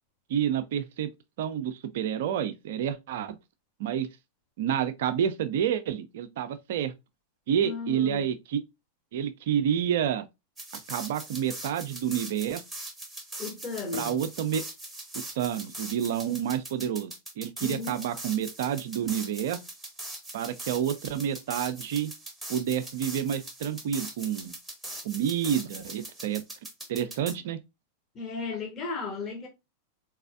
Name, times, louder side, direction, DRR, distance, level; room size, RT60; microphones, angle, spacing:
voice 1, 0.3-1.1 1.4-3.4 3.8-4.1 4.6-6.9 7.5-8.6 9.1-10.3 10.9-12.6 13.9-14.6 15.4-19.6 20.3-22.1 22.5-24.6 25.0-26.4 26.9-27.6, right 9 dB, 55° right, 0.5 m, -29 dB
voice 2, 7.6-8.3 13.4-14.2 17.6-18.0 28.1-29.5, left 4 dB, 25° left, 1.1 m, -35 dB
sound 1, 10.6-27.3, right 1 dB, 5° right, 0.9 m, -41 dB
4.0 x 2.9 x 2.4 m
figure-of-eight pair, 90°, 0 cm